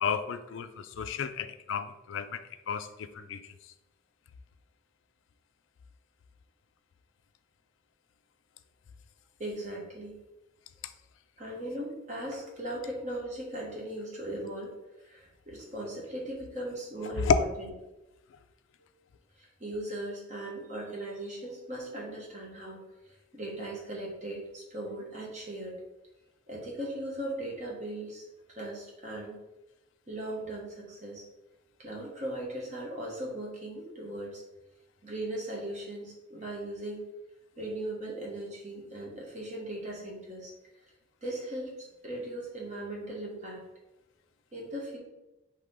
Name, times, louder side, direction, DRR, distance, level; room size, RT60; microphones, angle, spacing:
voice 1, 0.0-3.4 17.2-17.4, left 6 dB, 80° left, 10 dB, 0.4 m, -31 dB
voice 2, 9.4-10.1 11.4-14.7 15.0-17.7 19.4-25.8 26.5-29.4 30.1-31.2 31.8-34.4 35.0-37.0 37.6-40.5 41.2-43.7 44.5-45.0, right 1 dB, 35° right, -3 dB, 1.2 m, -38 dB
4.7 x 2.9 x 3.6 m, 1.0 s
head